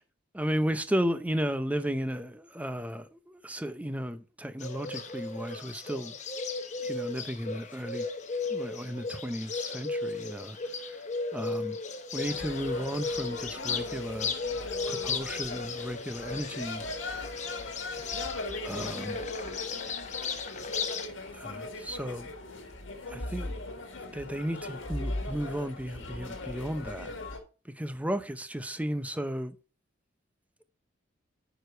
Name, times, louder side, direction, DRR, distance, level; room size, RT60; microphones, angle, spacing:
voice 1, 0.3-6.1 6.8-8.1 8.5-10.6 11.3-11.8 12.1-14.3 14.9-16.9 18.6-19.2 21.3-22.3 23.1-23.5 24.1-27.1 27.8-29.5, equal, 5° right, 0.6 m, -34 dB
Bird, 4.6-21.1, left 4 dB, 40° left, 0.9 m, -35 dB
sound 1, 12.1-27.4, left 2 dB, 75° left, 1.7 m, -39 dB
9.4 x 5.0 x 4.4 m
head